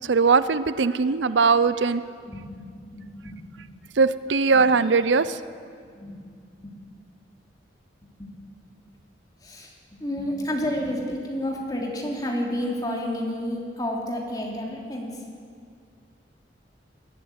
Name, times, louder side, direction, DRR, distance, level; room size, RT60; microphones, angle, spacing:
voice 1, 0.1-2.0 4.0-5.4, right 4 dB, 85° right, 14 dB, 0.7 m, -20 dB
voice 2, 2.3-3.7 4.5-4.6 5.9-6.2 6.6-6.8 8.2-8.3 9.4-9.7 10.0-15.2, left 1 dB, 20° left, -1 dB, 3.2 m, -30 dB
21.0 x 13.0 x 9.6 m, 2.2 s
head